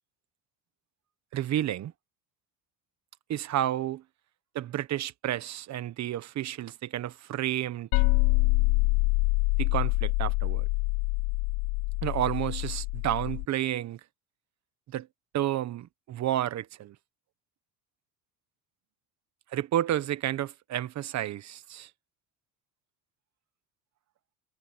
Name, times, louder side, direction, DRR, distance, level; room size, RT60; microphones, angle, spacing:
voice 1, 1.3-1.9 3.3-4.0 4.5-8.0 9.6-10.7 12.0-14.0 14.9-15.1 15.3-16.9 19.5-21.9, right 12 dB, 45° right, 1.3 m, -31 dB
sound 1, 7.9-13.4, left 23 dB, 80° left, 0.6 m, -26 dB
cardioid pair, 125°, 36 cm